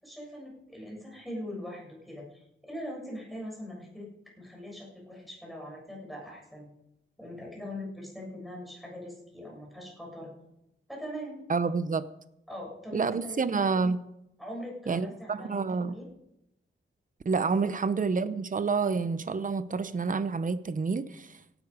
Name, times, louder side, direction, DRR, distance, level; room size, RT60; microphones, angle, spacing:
voice 1, 0.0-4.1 4.4-6.7 7.2-10.4 10.9-11.4 12.5-13.4 14.4-16.1 17.6-17.8, equal, ahead, -2 dB, 7.0 m, -41 dB
voice 2, 11.5-12.1 12.9-14.0 14.9-15.9 17.2-21.4, right 4 dB, 40° right, 14 dB, 0.8 m, -28 dB
17.0 x 11.5 x 4.9 m, 0.83 s
wide cardioid pair, 85°, 21 cm